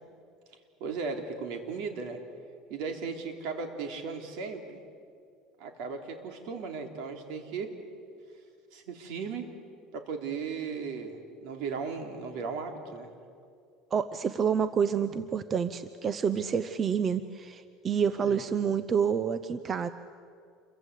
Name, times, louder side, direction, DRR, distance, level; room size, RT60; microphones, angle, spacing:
voice 1, 0.8-2.2 2.7-4.8 5.6-7.7 8.7-9.5 9.9-13.1 18.2-18.4, right 5 dB, 65° right, 4 dB, 3.3 m, -36 dB
voice 2, 13.9-19.9, right 7 dB, 25° right, 12 dB, 0.6 m, -28 dB
28.0 x 23.5 x 8.3 m, 2.4 s
cardioid pair, 160°, 0 cm